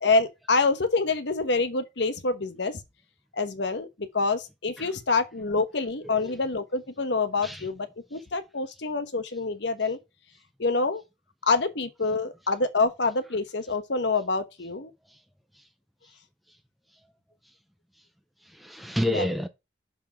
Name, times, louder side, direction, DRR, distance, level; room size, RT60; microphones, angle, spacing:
voice 1, 0.0-2.8 3.3-10.0 10.6-11.0 11.5-14.9 19.1-19.3, left 3 dB, 65° left, 1.1 m, -26 dB
voice 2, 6.0-6.4 7.4-7.7 18.5-19.5, left 1 dB, ahead, 0.5 m, -29 dB
6.9 x 3.8 x 5.8 m
head